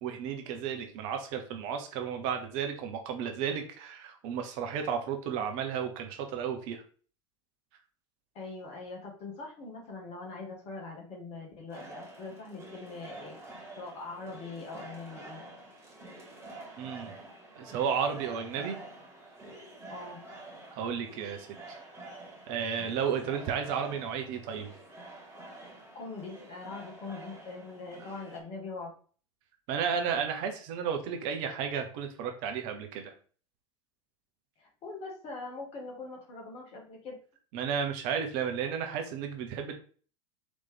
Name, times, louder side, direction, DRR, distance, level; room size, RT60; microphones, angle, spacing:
voice 1, 0.0-6.8 16.8-17.1 17.5-18.8 20.7-21.5 22.5-24.7 29.7-33.1 37.5-39.7, right 7 dB, 50° right, 5 dB, 0.8 m, -33 dB
voice 2, 8.3-13.4 13.8-15.4 19.9-20.2 25.9-28.9 34.6-37.2, left 3 dB, 40° left, 0 dB, 1.7 m, -42 dB
sound 1, 11.7-28.4, right 2 dB, 15° right, 1.9 m, -48 dB
4.0 x 3.2 x 3.5 m, 0.41 s
figure-of-eight pair, 80°, 16 cm